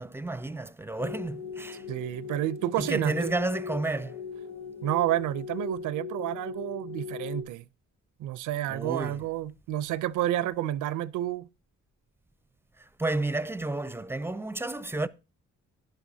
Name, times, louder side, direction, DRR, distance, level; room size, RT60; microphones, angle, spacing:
voice 1, 0.0-1.8 2.8-4.2 8.7-9.2 12.8-15.1, right 2 dB, 10° right, 0.5 m, -31 dB
sound 1, 1.0-7.4, left 6 dB, 75° left, 4.9 m, -39 dB
voice 2, 1.9-3.3 4.8-7.6 8.2-11.5, right 13 dB, 80° right, 0.6 m, -30 dB
11.5 x 10.5 x 2.7 m
cardioid pair, 90°, 30 cm